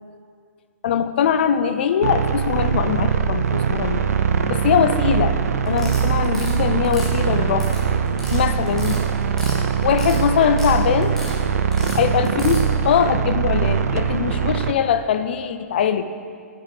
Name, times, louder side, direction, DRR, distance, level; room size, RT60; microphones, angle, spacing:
voice 1, 0.8-4.0 4.5-5.4 5.6-7.7 8.1-9.0 9.8-11.2 11.9-16.0, left 8 dB, 45° left, 11 dB, 0.5 m, -21 dB
sound 1, 2.0-14.7, right 7 dB, 75° right, 0.6 m, -22 dB
sound 2, 5.7-6.5 6.8-7.8 8.1-8.4 8.7-9.6 9.8-10.7 11.0-11.3 11.7-12.6, left 1 dB, 5° left, 1.2 m, -36 dB
9.9 x 5.9 x 5.1 m, 2.2 s
hypercardioid pair, 170°, 8 cm